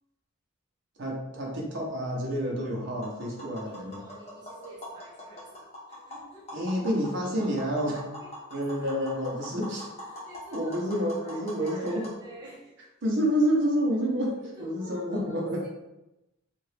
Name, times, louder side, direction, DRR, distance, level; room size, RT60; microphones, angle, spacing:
voice 1, 1.0-4.0 6.5-8.0 8.5-9.8 10.5-12.0 13.0-15.6, equal, 60° right, -2 dB, 0.8 m, -28 dB
Tap, 2.9-12.1, equal, 30° left, 0.9 m, -43 dB
voice 2, 3.6-6.6 8.2-8.3 8.6-8.9 10.1-12.7 14.3-15.7, right 1 dB, 20° right, -8 dB, 1.0 m, -48 dB
2.8 x 2.5 x 3.3 m, 0.96 s
head